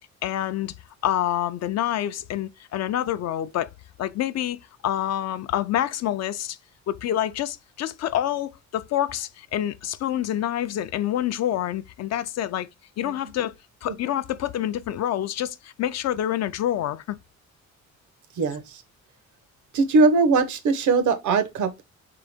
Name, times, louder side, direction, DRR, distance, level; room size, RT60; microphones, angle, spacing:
voice 1, 0.2-0.7 1.0-3.7 4.0-6.6 6.9-12.7 13.0-13.5 13.8-17.2, left 11 dB, 60° left, 0.5 m, -27 dB
voice 2, 18.4-18.8 19.7-21.8, right 3 dB, 75° right, 0.9 m, -21 dB
3.8 x 3.4 x 3.4 m
cardioid pair, 90°, 30 cm